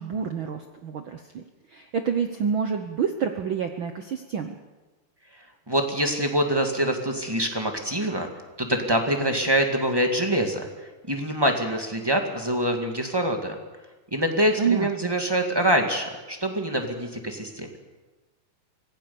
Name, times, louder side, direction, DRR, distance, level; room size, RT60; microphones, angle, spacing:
voice 1, 0.0-1.4 1.7-4.6 14.6-14.9, right 7 dB, 75° right, 6 dB, 1.1 m, -28 dB
voice 2, 5.7-8.3 8.6-13.6 14.1-17.7, right 1 dB, 10° right, 4 dB, 1.2 m, -25 dB
25.0 x 17.0 x 7.0 m, 1.2 s
omnidirectional pair, 3.6 m